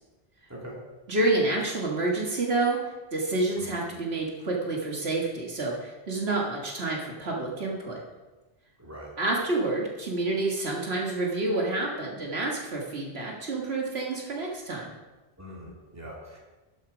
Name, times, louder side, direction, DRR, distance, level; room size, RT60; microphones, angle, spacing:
voice 1, 1.1-2.8 3.1-8.0 9.2-14.9, right 2 dB, 70° right, -1 dB, 2.0 m, -28 dB
voice 2, 8.8-9.1 15.4-16.4, equal, 15° right, -4 dB, 2.7 m, -42 dB
12.0 x 7.6 x 5.0 m, 1.2 s
omnidirectional pair, 1.1 m